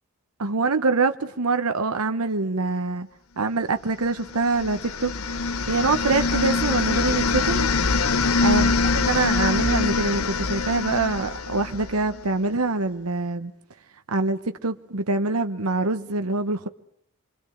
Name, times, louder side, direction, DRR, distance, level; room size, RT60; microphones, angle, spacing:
voice 1, 0.4-3.1 3.4-5.1 5.7-7.7 8.4-13.5 14.1-16.7, right 3 dB, 90° right, 1.1 m, -24 dB
sound 1, 4.2-12.2, left 4 dB, 80° left, 1.1 m, -24 dB
28.5 x 23.0 x 8.0 m
head